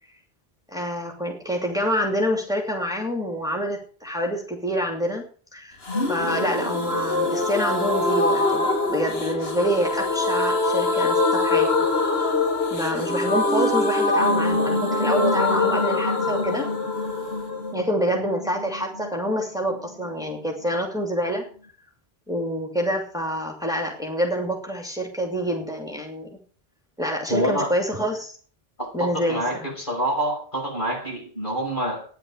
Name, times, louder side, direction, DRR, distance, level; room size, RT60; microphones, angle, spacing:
voice 1, 0.7-5.2 5.5-5.8 6.1-11.7 12.7-16.7 17.7-21.4 22.3-26.3 27.0-28.4 28.9-29.7, equal, 5° right, 0 dB, 2.8 m, -27 dB
sound 1, 5.8-19.5 19.7-19.8 20.1-20.2, left 2 dB, 75° left, 2.2 m, -24 dB
voice 2, 27.3-27.7 28.8-32.1, right 1 dB, 55° left, -2 dB, 6.5 m, -27 dB
13.5 x 10.5 x 6.4 m, 0.44 s
omnidirectional pair, 1.0 m